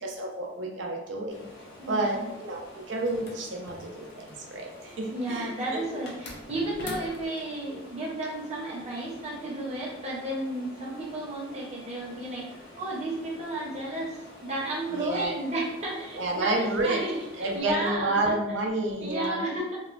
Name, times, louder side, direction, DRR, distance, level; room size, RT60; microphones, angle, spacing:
voice 1, 0.0-1.5 1.9-5.5 14.9-15.4 16.2-17.0 17.4-19.4, right 2 dB, 65° right, 0 dB, 0.5 m, -30 dB
sound 1, 1.3-17.6, left 1 dB, 90° left, 0.9 m, -49 dB
voice 2, 1.8-2.3 5.1-18.3 19.0-19.8, right 1 dB, 35° right, -5 dB, 0.7 m, -33 dB
sound 2, 3.0-4.5 6.1-7.5, left 2 dB, 55° left, 0.4 m, -43 dB
2.8 x 2.1 x 2.4 m, 0.94 s
head